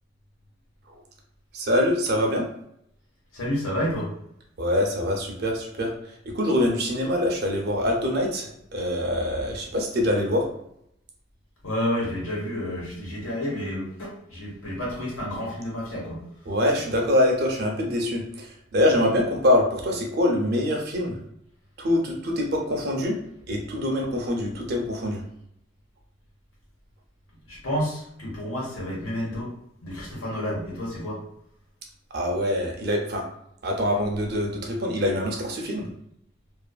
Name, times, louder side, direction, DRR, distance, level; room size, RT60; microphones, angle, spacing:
voice 1, 1.5-2.4 4.6-5.9 6.3-10.4 16.5-21.1 21.8-23.1 23.5-25.2 32.1-33.2 33.6-35.9, left 1 dB, 50° right, 1 dB, 0.5 m, -24 dB
voice 2, 3.3-4.1 11.6-16.2 27.5-29.5 29.8-31.2, equal, 85° left, -4 dB, 1.1 m, -30 dB
2.5 x 2.5 x 2.2 m, 0.75 s
head